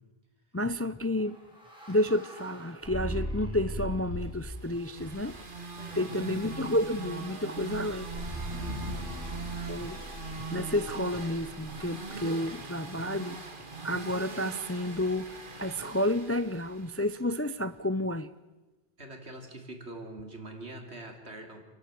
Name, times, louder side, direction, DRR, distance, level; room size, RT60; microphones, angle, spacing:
voice 1, 0.5-1.4 1.9-5.4 6.0-8.1 9.7-10.0 10.5-13.4 13.8-15.3 15.6-18.3, left 1 dB, 20° left, 14 dB, 0.5 m, -30 dB
sound 1, 1.2-4.5 5.0-5.5 8.1-12.2, equal, 5° right, 6.9 m, -39 dB
sound 2, 4.4-17.3, right 4 dB, 50° right, 2.0 m, -41 dB
voice 2, 5.8-6.3 8.6-9.1 19.0-21.7, right 2 dB, 85° right, 4 dB, 3.6 m, -44 dB
28.0 x 12.0 x 9.2 m, 1.2 s
omnidirectional pair, 1.1 m